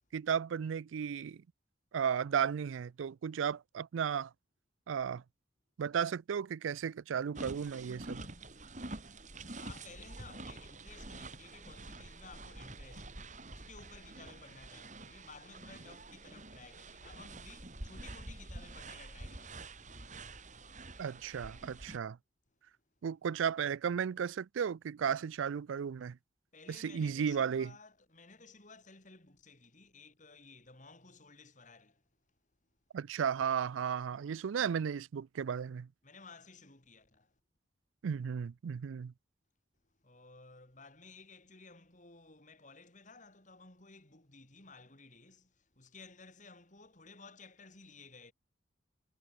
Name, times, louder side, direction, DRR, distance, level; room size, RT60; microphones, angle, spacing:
voice 1, 0.1-1.4 1.9-4.3 4.9-5.2 5.8-8.2 21.0-22.2 23.0-26.2 26.7-27.7 32.9-35.9 38.0-39.1, right 7 dB, 85° right, 0.4 m, -34 dB
sound 1, 7.3-22.0, right 2 dB, 40° right, 3.2 m, -47 dB
voice 2, 9.6-20.0 26.5-32.0 36.0-37.3 40.0-48.3, left 3 dB, 40° left, 4.0 m, -56 dB
head